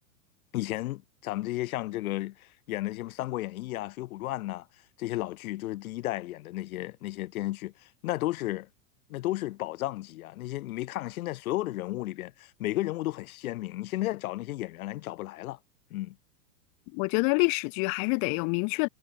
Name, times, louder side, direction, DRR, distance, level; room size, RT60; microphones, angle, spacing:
voice 1, 0.5-4.7 5.0-8.7 9.1-15.6 15.9-16.2, left 17 dB, 65° left, 1.4 m, -33 dB
voice 2, 16.9-18.9, left 40 dB or more, 45° left, 1.4 m, -26 dB
hypercardioid pair, 110°, 47 cm